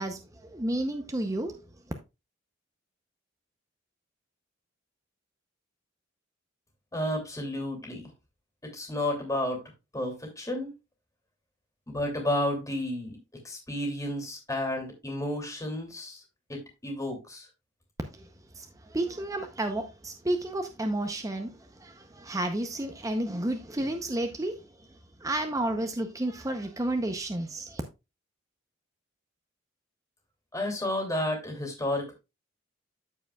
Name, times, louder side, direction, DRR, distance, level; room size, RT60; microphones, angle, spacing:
voice 1, 0.0-1.5 18.2-18.3 18.5-24.6 25.2-27.8, right 1 dB, 15° right, 0.7 m, -31 dB
voice 2, 6.9-8.1 8.6-9.6 9.9-10.7 11.9-13.2 13.4-16.2 16.5-17.5 30.5-32.1, left 1 dB, 15° left, 2.7 m, -31 dB
14.0 x 4.9 x 2.3 m
head